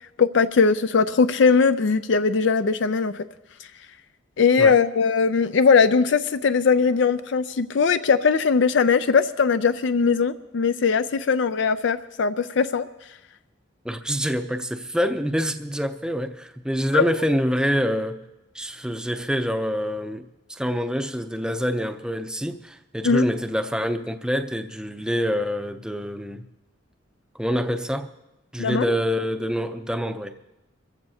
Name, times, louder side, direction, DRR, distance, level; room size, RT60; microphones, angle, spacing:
voice 1, 0.2-3.3 4.4-12.8 16.9-17.0 23.0-23.2 28.6-28.8, left 5 dB, 65° left, 0.4 m, -20 dB
voice 2, 13.8-18.2 18.5-20.2 20.5-26.4 27.3-28.1 28.5-30.4, equal, 5° right, 0.6 m, -26 dB
24.5 x 15.0 x 2.8 m
head